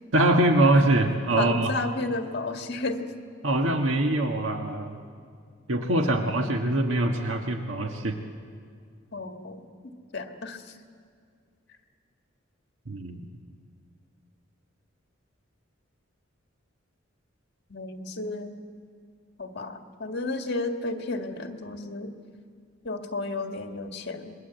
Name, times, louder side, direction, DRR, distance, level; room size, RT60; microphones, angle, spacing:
voice 1, 0.1-1.7 3.4-5.0 5.7-8.2 12.9-13.3, right 1 dB, 85° right, 4 dB, 1.6 m, -23 dB
voice 2, 1.4-3.1 6.1-6.5 9.1-10.7 17.7-18.6 19.4-22.1 22.8-24.4, left 2 dB, 55° left, 5 dB, 1.8 m, -33 dB
26.5 x 22.0 x 8.1 m, 2.3 s
head